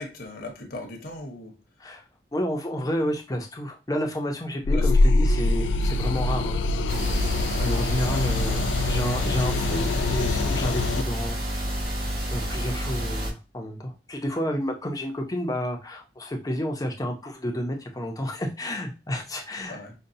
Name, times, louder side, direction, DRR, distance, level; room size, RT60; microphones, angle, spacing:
voice 1, 0.0-1.5 4.7-4.9 7.5-7.9 19.7-19.9, left 2 dB, 55° left, 3 dB, 0.9 m, -38 dB
voice 2, 2.3-6.6 7.6-11.6 12.3-19.8, equal, 20° left, 2 dB, 0.6 m, -30 dB
sound 1, 4.6-11.0, left 2 dB, 85° left, 0.3 m, -24 dB
sound 2, 6.9-13.3, right 1 dB, 60° right, 1.9 m, -29 dB
5.2 x 2.2 x 2.7 m, 0.28 s
head